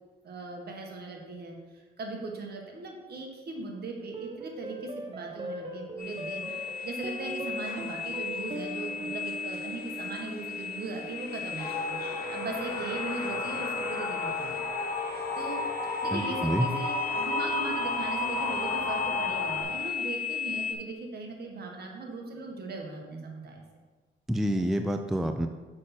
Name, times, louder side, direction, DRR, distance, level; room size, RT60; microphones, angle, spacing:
voice 1, 0.2-6.5 6.8-12.0 12.3-14.6 15.3-15.6 16.0-23.6, right 3 dB, 55° right, 1 dB, 1.6 m, -39 dB
sound 1, 4.1-12.8, right 2 dB, 25° right, 0.9 m, -41 dB
sound 2, 6.0-20.7, left 6 dB, 50° left, 1.0 m, -36 dB
sound 3, 11.6-19.6, left 2 dB, 20° left, 1.8 m, -33 dB
voice 2, 16.1-16.7 24.3-25.5, equal, ahead, 6 dB, 0.4 m, -28 dB
6.4 x 5.8 x 4.4 m, 1.3 s
cardioid pair, 90°, 20 cm